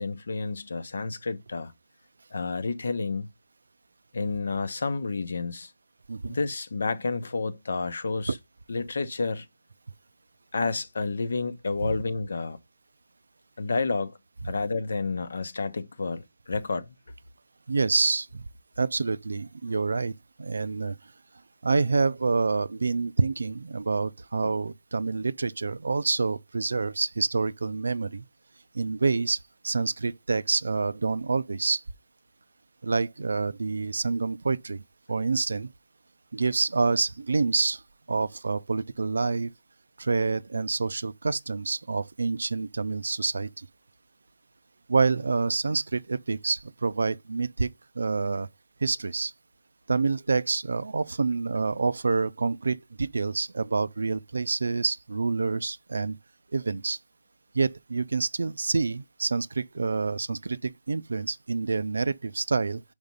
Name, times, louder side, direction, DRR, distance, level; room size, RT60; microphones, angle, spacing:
voice 1, 0.0-1.7 2.3-3.3 4.1-5.7 6.3-8.4 8.7-9.4 10.5-12.6 13.6-14.2 14.4-16.9 24.4-24.5, left 4 dB, 70° left, 0.8 m, -30 dB
voice 2, 17.7-18.4 18.8-21.0 21.6-28.2 28.7-31.8 32.8-34.8 35.1-35.7 36.3-37.8 38.1-39.5 40.0-43.7 44.9-47.7 48.0-48.5 48.8-49.3 49.9-56.2 56.5-57.0 57.5-62.8, right 4 dB, 80° right, 0.4 m, -27 dB
5.2 x 4.8 x 5.3 m
hypercardioid pair, 155°, 0 cm